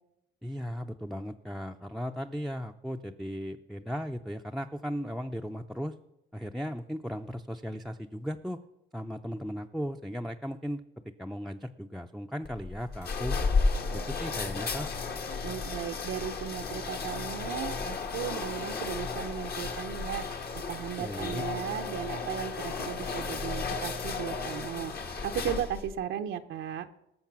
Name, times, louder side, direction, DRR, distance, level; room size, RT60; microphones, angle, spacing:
voice 1, 0.4-5.9 6.3-8.6 8.9-10.8 11.2-13.4 13.9-14.9 21.0-21.4, equal, ahead, 5 dB, 0.5 m, -36 dB
sound 1, 12.4-25.9, left 4 dB, 50° left, 1.4 m, -33 dB
voice 2, 15.4-20.2 20.5-24.9 25.2-26.9, right 9 dB, 80° right, 6 dB, 0.7 m, -36 dB
19.0 x 6.5 x 6.1 m, 0.90 s
cardioid pair, 90°, 20 cm